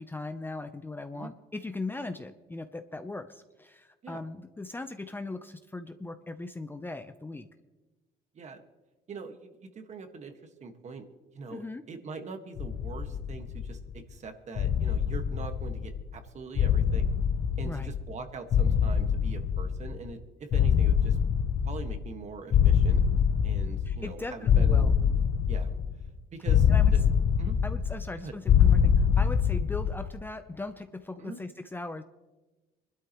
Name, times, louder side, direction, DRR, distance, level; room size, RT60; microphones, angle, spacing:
voice 1, 0.0-7.5 11.5-11.8 17.6-17.9 23.8-24.9 26.7-26.9 27.6-32.0, left 2 dB, 10° left, 8 dB, 0.6 m, -39 dB
voice 2, 9.1-10.3 10.6-11.0 11.3-17.1 17.6-21.2 21.6-23.0 23.4-25.0 25.5-25.8 26.3-27.0 27.4-27.6 28.2-28.3 31.2-31.4, right 4 dB, 45° right, 6 dB, 1.6 m, -42 dB
sound 1, 12.6-13.9 14.6-16.1 16.6-18.2 18.5-20.1 20.5-22.2 22.5-24.1 24.5-26.1 26.5-28.1 28.5-30.1, left 8 dB, 50° left, 0.7 m, -24 dB
24.0 x 12.0 x 3.1 m, 1.1 s
cardioid pair, 110°, 17 cm